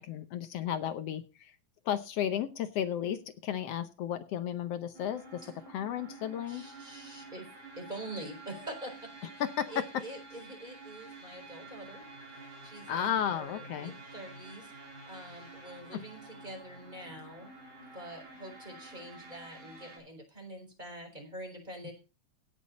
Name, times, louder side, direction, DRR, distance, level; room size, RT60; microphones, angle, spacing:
voice 1, 0.0-1.5 1.8-5.4 5.7-6.6 9.4-9.8 12.9-13.9 15.9-16.0 21.8-21.9, left 9 dB, 70° left, 10 dB, 1.7 m, -33 dB
sound 1, 4.9-20.0, right 2 dB, 40° right, 4.3 m, -50 dB
voice 2, 6.5-7.5 7.8-9.1 9.7-12.0 12.6-14.7 15.1-17.5 17.9-21.9, right 1 dB, 15° right, 3 dB, 4.1 m, -45 dB
17.0 x 7.4 x 4.1 m, 0.31 s
omnidirectional pair, 3.3 m